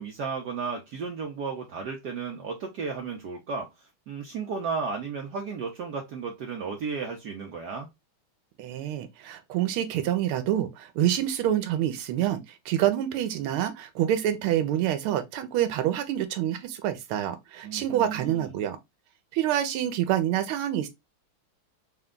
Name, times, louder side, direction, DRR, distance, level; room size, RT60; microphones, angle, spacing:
voice 1, 0.0-7.9 17.6-18.5, right 5 dB, 70° right, 1.0 m, -34 dB
voice 2, 8.6-18.8 19.3-20.9, right 11 dB, 90° right, 1.5 m, -27 dB
4.3 x 2.3 x 3.6 m
omnidirectional pair, 2.3 m